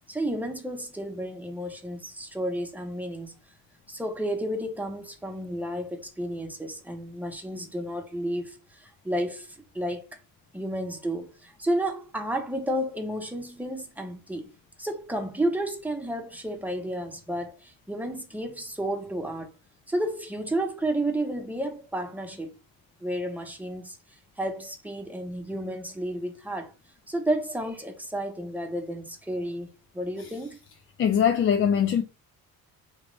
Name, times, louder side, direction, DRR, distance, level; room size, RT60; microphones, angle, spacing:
voice 1, 0.1-3.3 3.9-10.1 10.5-14.5 14.8-19.5 19.9-22.5 23.0-24.0 24.4-26.7 27.1-29.7 29.9-30.6, right 1 dB, 5° right, 0.9 m, -31 dB
voice 2, 31.0-32.0, left 8 dB, 35° left, 0.4 m, -22 dB
3.1 x 2.5 x 3.1 m
cardioid pair, 80°, 38 cm